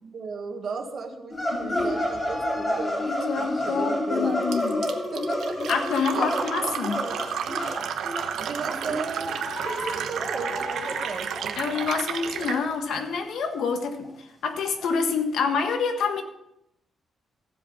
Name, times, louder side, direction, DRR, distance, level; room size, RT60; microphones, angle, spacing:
voice 1, 0.0-3.1 3.3-4.4 5.1-5.5 6.1-7.2 8.4-11.6, right 5 dB, 40° right, 4 dB, 1.6 m, -35 dB
sound 1, 1.3-11.5 11.7-11.8 12.1-12.2 12.5-12.6 13.0-13.1 13.4-13.5 14.0-14.1 14.8-14.9, left 1 dB, 20° left, 2.2 m, -30 dB
voice 2, 1.6-2.1 3.1-4.9 5.7-7.0 11.6-16.2, left 5 dB, 75° left, 6 dB, 1.5 m, -27 dB
Fill (with liquid), 4.5-12.6, right 8 dB, 85° right, 1.0 m, -32 dB
15.0 x 7.8 x 5.5 m, 0.83 s
wide cardioid pair, 175°, 0 cm